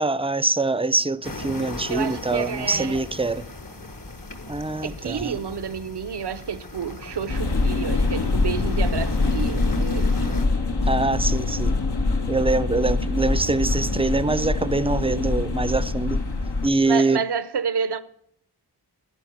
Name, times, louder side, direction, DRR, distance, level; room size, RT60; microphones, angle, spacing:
voice 1, 0.0-3.4 4.5-5.4 10.9-11.7 12.3-16.2 16.6-17.2, right 3 dB, 15° right, 0.6 m, -24 dB
sound 1, 1.2-10.5, left 2 dB, 50° left, 1.7 m, -35 dB
voice 2, 1.9-3.0 4.8-10.3 16.9-18.0, right 6 dB, 70° right, 0.8 m, -30 dB
sound 2, 7.3-16.7, left 3 dB, 70° left, 1.6 m, -24 dB
11.0 x 10.5 x 7.2 m
wide cardioid pair, 70°, 41 cm